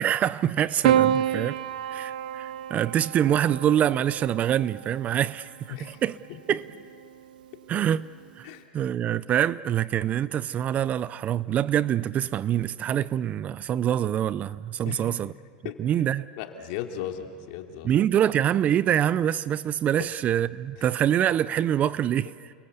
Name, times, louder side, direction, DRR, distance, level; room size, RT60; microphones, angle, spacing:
voice 1, 0.0-1.6 1.9-6.1 6.5-6.6 7.7-8.1 8.4-8.5 8.7-15.3 15.8-16.3 17.8-22.3, right 10 dB, 35° right, 0.6 m, -25 dB
Piano, 0.8-5.3 6.5-7.2, right 10 dB, 85° right, 0.9 m, -28 dB
voice 2, 5.7-6.0 8.4-8.6 14.9-15.1 15.6-15.8 16.4-18.0 20.0-20.1 20.8-20.9, left 10 dB, 65° left, 3.0 m, -36 dB
29.5 x 22.5 x 8.2 m
supercardioid pair, 120°, 4 cm